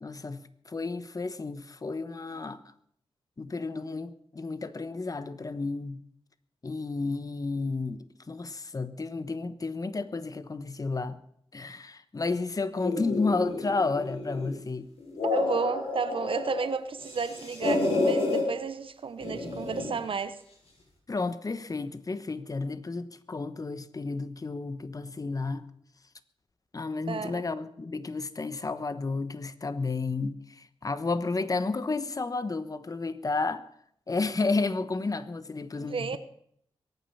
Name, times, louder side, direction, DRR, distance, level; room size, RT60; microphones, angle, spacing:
voice 1, 0.0-2.6 3.4-6.0 6.6-11.2 11.5-14.9 21.1-25.7 26.7-33.7 34.1-36.2, left 3 dB, 35° left, 1.2 m, -32 dB
sound 1, 12.8-14.6 15.0-16.7 17.0-18.4 19.2-20.0, left 3 dB, 80° left, 6.7 m, -30 dB
voice 2, 15.3-20.4 27.1-27.4 35.7-36.2, right 5 dB, 60° right, 1.0 m, -32 dB
22.5 x 9.3 x 5.7 m
cardioid pair, 65°, 10 cm